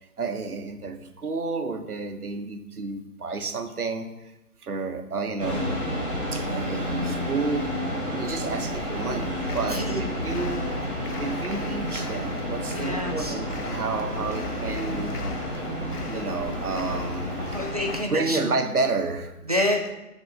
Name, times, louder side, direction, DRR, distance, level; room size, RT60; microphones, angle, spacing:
voice 1, 0.2-4.3 4.6-5.7 6.3-7.7 8.2-10.7 11.0-15.2 15.5-15.7 16.1-17.6 18.1-19.4, right 3 dB, 70° right, 6 dB, 1.3 m, -30 dB
sound 1, 5.4-18.0, equal, ahead, 1.6 m, -30 dB
sound 2, 9.0-18.0, left 4 dB, 75° left, 1.1 m, -41 dB
voice 2, 9.7-10.1 12.7-13.3 17.5-18.4 19.5-19.9, left 1 dB, 25° right, 2 dB, 0.7 m, -27 dB
8.2 x 4.3 x 6.5 m, 0.95 s
figure-of-eight pair, 170°, 47 cm